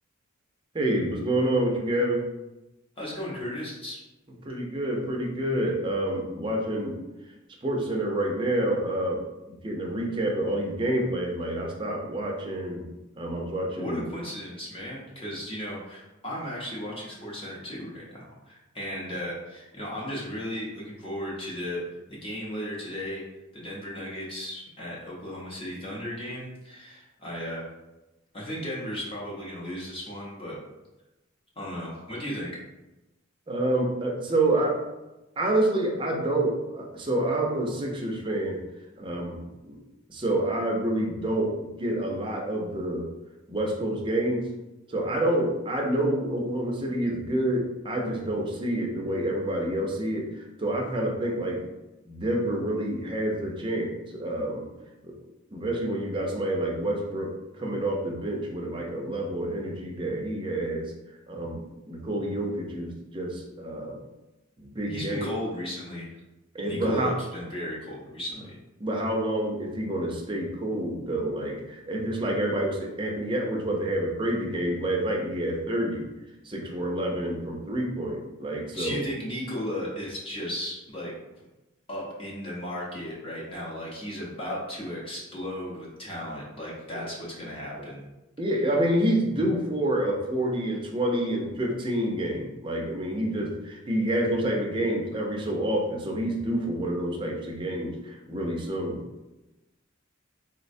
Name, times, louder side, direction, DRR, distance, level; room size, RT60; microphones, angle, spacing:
voice 1, 0.7-2.2 4.5-7.0 7.6-9.2 9.6-12.8 13.2-14.0 33.5-34.8 35.4-38.6 39.0-39.4 39.6-39.8 40.1-43.0 43.5-44.4 44.9-51.6 52.1-54.6 55.0-55.1 55.5-60.9 61.3-61.6 61.9-64.0 64.6-65.3 66.5-67.2 68.8-76.1 76.4-79.1 86.9-87.0 87.8-87.9 88.4-99.0, right 1 dB, 25° right, 0 dB, 0.5 m, -28 dB
voice 2, 3.0-4.0 13.8-21.8 22.1-23.2 23.5-27.6 28.3-30.6 31.6-32.5 64.9-66.1 66.6-68.5 78.7-81.1 81.9-88.0, equal, 25° left, -5 dB, 0.7 m, -35 dB
4.0 x 2.1 x 2.6 m, 0.99 s
head